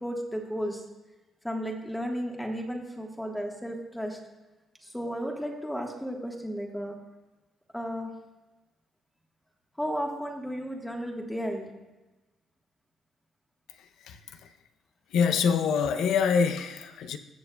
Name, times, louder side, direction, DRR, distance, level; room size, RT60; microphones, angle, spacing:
voice 1, 0.0-0.8 1.4-4.2 4.8-7.0 7.7-8.1 9.8-11.7, equal, 5° left, 1 dB, 1.4 m, -33 dB
voice 2, 13.8-14.5 15.1-17.2, left 6 dB, 80° left, 9 dB, 0.6 m, -26 dB
18.0 x 6.7 x 2.3 m, 1.1 s
cardioid pair, 90°, 0 cm